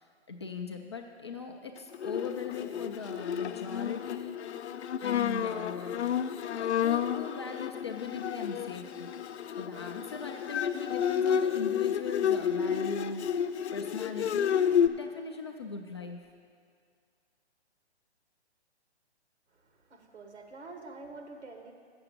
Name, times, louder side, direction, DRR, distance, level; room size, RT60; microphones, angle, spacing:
voice 1, 0.0-4.4 5.0-6.0 6.5-9.1 9.6-16.3, left 4 dB, 25° left, 3 dB, 0.3 m, -40 dB
Bowed string instrument, 1.9-14.9, left 8 dB, 80° left, 0.5 m, -30 dB
voice 2, 19.5-21.7, right 3 dB, 80° right, 3 dB, 1.7 m, -47 dB
7.6 x 6.9 x 7.4 m, 2.1 s
hypercardioid pair, 145°, 34 cm